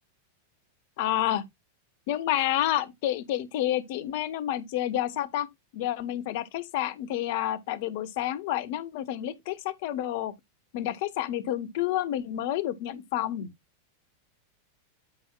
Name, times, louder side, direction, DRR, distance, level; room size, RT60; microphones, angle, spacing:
voice 1, 1.0-1.4 2.1-5.5 5.7-10.3 10.7-13.5, left 12 dB, 50° left, 1.1 m, -29 dB
13.5 x 5.5 x 2.3 m
figure-of-eight pair, 90°, 0 cm